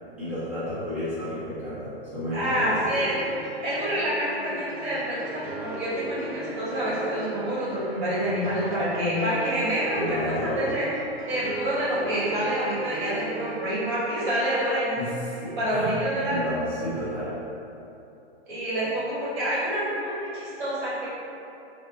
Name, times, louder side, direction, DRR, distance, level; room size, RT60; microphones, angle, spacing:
voice 1, 0.2-2.7 9.9-10.7 15.0-15.1 15.4-17.3, equal, 5° right, -16 dB, 1.3 m, -31 dB
voice 2, 2.3-3.2 3.6-10.9 11.3-15.1 15.6-16.4 18.5-21.1, equal, 45° right, -10 dB, 1.3 m, -27 dB
sound 1, 2.4-14.4, right 2 dB, 65° right, 0.6 m, -38 dB
4.4 x 2.2 x 2.5 m, 2.8 s
hypercardioid pair, 135°, 33 cm